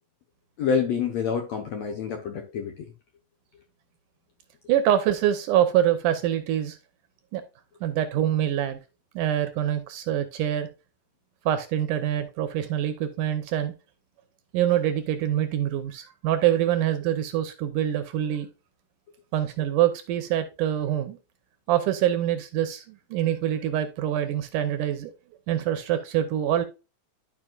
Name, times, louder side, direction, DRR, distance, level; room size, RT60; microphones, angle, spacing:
voice 1, 0.6-2.9, left 6 dB, 70° left, 1.7 m, -27 dB
voice 2, 4.7-6.8 7.3-7.4 7.8-8.8 9.2-10.7 11.5-13.7 14.5-18.5 19.3-21.2 21.7-25.1 25.5-26.6, right 11 dB, 75° right, 2.1 m, -25 dB
12.0 x 5.1 x 2.3 m
omnidirectional pair, 4.2 m